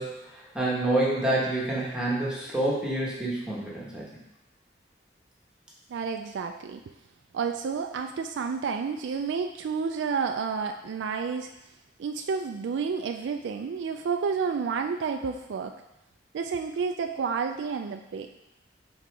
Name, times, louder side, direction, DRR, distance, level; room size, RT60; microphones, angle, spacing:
voice 1, 0.0-4.0, right 1 dB, 5° right, -6 dB, 1.4 m, -28 dB
voice 2, 5.9-6.8 7.3-11.5 12.0-15.8 16.3-18.3, right 5 dB, 75° right, 5 dB, 0.3 m, -30 dB
5.9 x 4.0 x 4.7 m, 0.91 s
head